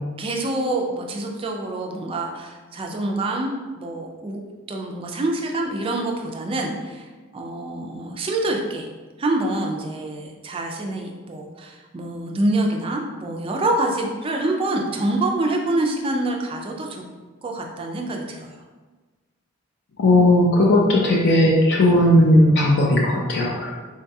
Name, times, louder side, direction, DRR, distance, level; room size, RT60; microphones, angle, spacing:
voice 1, 0.2-4.4 4.7-8.9 9.2-17.0 17.4-18.6, right 2 dB, 25° right, 1 dB, 0.3 m, -26 dB
voice 2, 20.0-23.7, left 1 dB, 55° left, -2 dB, 0.4 m, -16 dB
3.8 x 2.3 x 2.7 m, 1.3 s
head